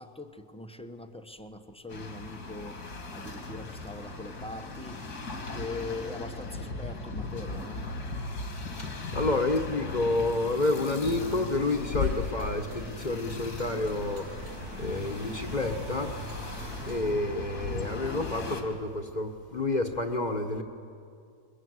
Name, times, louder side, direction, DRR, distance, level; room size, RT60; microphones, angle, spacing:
voice 1, 0.0-2.8 3.1-5.0 5.5-7.8, left 2 dB, 5° left, 7 dB, 0.9 m, -41 dB
sound 1, 1.9-18.6, left 2 dB, 80° left, 2.8 m, -38 dB
voice 2, 8.8-14.4 14.8-16.2 16.8-20.6, left 2 dB, 30° left, 5 dB, 1.3 m, -29 dB
Bird / Wind, 9.5-18.2, left 7 dB, 60° left, 1.2 m, -40 dB
sound 2, 11.7-17.1, right 2 dB, 75° right, 2.2 m, -44 dB
23.0 x 22.0 x 9.5 m, 2.3 s
omnidirectional pair, 1.6 m